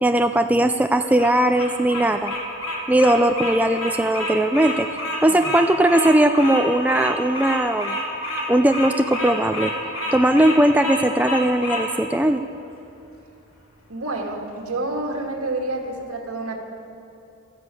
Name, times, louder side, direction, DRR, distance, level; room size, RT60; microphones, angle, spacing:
voice 1, 0.0-2.3 2.9-4.9 5.2-8.0 8.5-9.7 10.1-12.4, right 1 dB, 5° right, 7 dB, 0.3 m, -19 dB
Bird vocalization bird call bird song, 1.0-11.8, left 1 dB, 70° left, 2.9 m, -28 dB
voice 2, 13.9-16.6, right 2 dB, 90° right, 2 dB, 1.8 m, -28 dB
13.0 x 11.5 x 8.3 m, 2.6 s
head